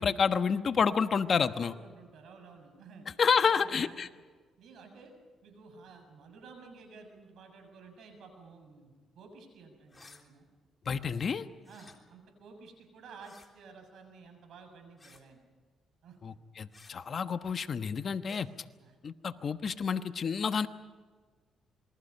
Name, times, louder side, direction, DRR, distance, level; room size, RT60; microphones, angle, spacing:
voice 1, 0.0-1.7 3.2-4.1 10.9-11.4 16.2-18.5 19.0-20.7, left 6 dB, 50° left, 10 dB, 1.2 m, -29 dB
voice 2, 1.6-3.1 3.4-4.2 4.6-5.1 5.4-10.5 11.0-11.3 11.7-15.4 16.0-16.2 17.1-17.2 18.0-18.2 18.8-19.0, right 4 dB, 70° right, 5 dB, 7.0 m, -53 dB
sound 1, 9.9-10.2 11.6-12.0 13.2-13.5 15.0-15.3 16.7-16.9 18.2-18.5, left 3 dB, 20° left, 3.4 m, -56 dB
27.5 x 22.0 x 5.6 m, 1.4 s
cardioid pair, 90°, 0 cm